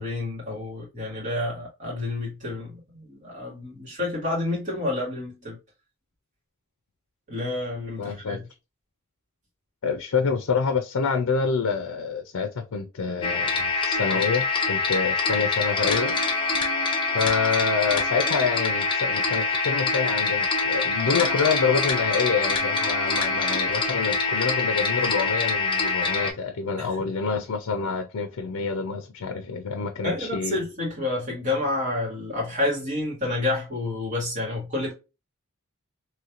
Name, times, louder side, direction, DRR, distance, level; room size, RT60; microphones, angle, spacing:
voice 1, 0.0-5.6 7.3-8.4 26.8-26.9 30.0-34.9, left 2 dB, 35° right, 1.9 m, -29 dB
voice 2, 8.0-8.4 9.8-16.2 17.1-30.7, left 5 dB, 80° left, 0.5 m, -27 dB
sound 1, 13.2-26.3, left 4 dB, 25° left, 0.7 m, -25 dB
3.1 x 3.0 x 2.4 m
head